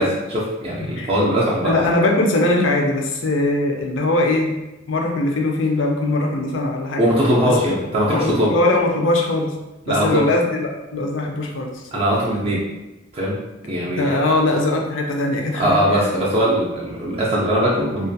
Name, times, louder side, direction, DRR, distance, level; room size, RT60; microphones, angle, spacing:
voice 1, 0.0-1.9 7.0-8.6 9.9-10.3 11.9-12.6 13.1-13.4 13.6-14.3 15.6-18.1, equal, 30° right, -5 dB, 0.3 m, -20 dB
voice 2, 1.6-4.6 4.9-7.0 7.4-7.5 8.1-9.5 9.9-11.8 14.0-16.1, left 2 dB, 75° left, 1 dB, 0.5 m, -21 dB
2.4 x 2.2 x 2.6 m, 1.0 s
head